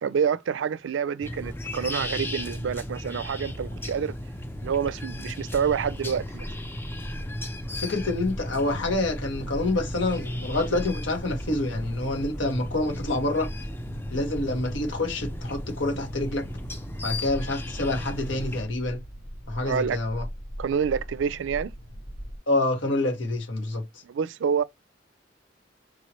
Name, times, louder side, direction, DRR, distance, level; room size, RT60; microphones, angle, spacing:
voice 1, 0.0-4.1 4.6-6.5 19.6-20.0 20.6-21.7 24.0-24.6, right 7 dB, 80° right, 0.4 m, -27 dB
sound 1, 1.2-18.6, left 1 dB, 10° left, 0.5 m, -36 dB
sound 2, 5.5-22.4, equal, 50° left, 1.1 m, -40 dB
voice 2, 7.7-13.5 14.1-16.5 17.0-19.0 19.5-20.2 22.5-23.8, left 2 dB, 90° left, 1.4 m, -27 dB
4.6 x 3.1 x 2.9 m
head